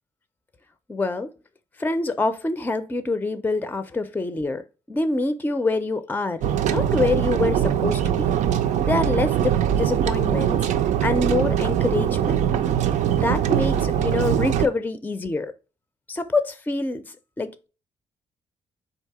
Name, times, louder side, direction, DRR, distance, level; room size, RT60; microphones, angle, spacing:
voice 1, 0.9-1.3 1.8-8.3 8.8-10.7 11.0-12.5 13.1-15.5 16.1-17.0 17.4-17.7, left 3 dB, 15° left, 0.5 m, -26 dB
sound 1, 6.4-14.7, right 10 dB, 75° right, 0.4 m, -22 dB
3.9 x 2.8 x 4.7 m
cardioid pair, 75°, 13 cm